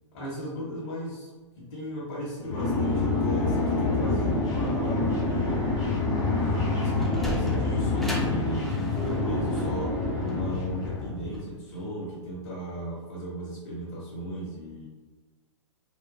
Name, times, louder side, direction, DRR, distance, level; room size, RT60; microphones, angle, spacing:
voice 1, 0.1-1.3 1.6-5.2 5.4-5.6 6.7-14.9, equal, 50° left, -5 dB, 1.0 m, -36 dB
sound 1, 2.4-11.4, left 2 dB, 25° left, 0.7 m, -27 dB
Sliding door, 6.9-11.9, right 1 dB, ahead, 0.3 m, -40 dB
3.1 x 2.1 x 2.2 m, 1.3 s
hypercardioid pair, 130°, 16 cm